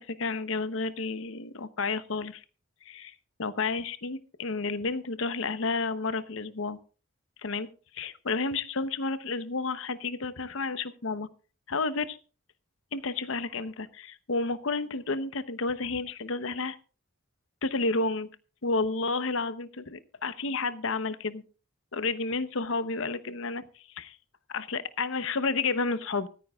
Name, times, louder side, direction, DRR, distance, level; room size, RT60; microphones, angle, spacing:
voice 1, 0.0-2.4 2.8-3.1 3.4-6.8 7.4-7.7 7.9-11.3 11.7-12.2 12.9-16.8 17.6-18.3 18.6-21.4 21.9-24.2 24.5-26.3, left 3 dB, 65° left, 13 dB, 0.9 m, -31 dB
25.0 x 9.3 x 2.4 m, 0.37 s
head